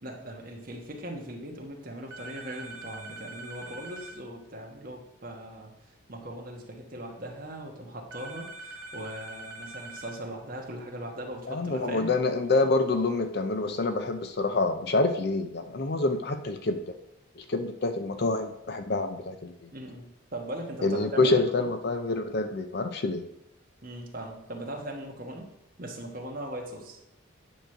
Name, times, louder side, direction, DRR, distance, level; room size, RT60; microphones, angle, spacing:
voice 1, 0.0-5.7 6.1-12.1 19.7-21.7 23.8-25.5 25.8-27.0, right 1 dB, 40° right, 1 dB, 1.3 m, -39 dB
sound 1, 2.1-4.2 8.1-10.2, right 1 dB, 75° right, 0.9 m, -43 dB
voice 2, 11.5-16.8 17.4-19.5 20.8-23.2, left 3 dB, 50° left, 7 dB, 0.5 m, -27 dB
9.2 x 3.1 x 6.5 m, 0.83 s
head